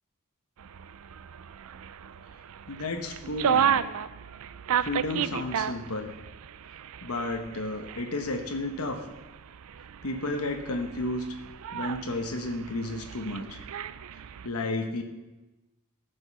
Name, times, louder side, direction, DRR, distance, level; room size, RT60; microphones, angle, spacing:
sound 1, 0.6-14.5, right 8 dB, 70° right, 0.4 m, -33 dB
voice 1, 2.7-3.8 4.8-6.1 7.0-9.1 10.0-11.3 11.7-13.6 14.4-15.0, left 2 dB, 75° left, 4 dB, 1.1 m, -32 dB
14.0 x 5.5 x 6.9 m, 1.1 s
head